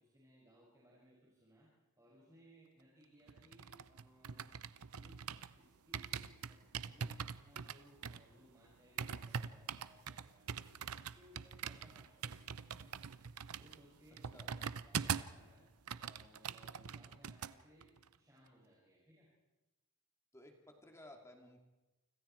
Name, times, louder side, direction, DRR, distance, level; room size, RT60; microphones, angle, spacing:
voice 1, 0.0-1.7 2.0-4.5 4.9-5.2 5.6-13.0 13.5-14.5 14.8-15.7 16.0-19.3, equal, 15° right, -7 dB, 6.1 m, -65 dB
Typing on Mac Keyboard, 3.3-5.6 5.9-15.4 15.7-17.5 17.8-18.1, right 7 dB, 75° right, 0.7 m, -43 dB
voice 2, 20.3-21.6, left 1 dB, 15° left, 2 dB, 2.7 m, -57 dB
29.0 x 25.5 x 4.6 m, 1.1 s
head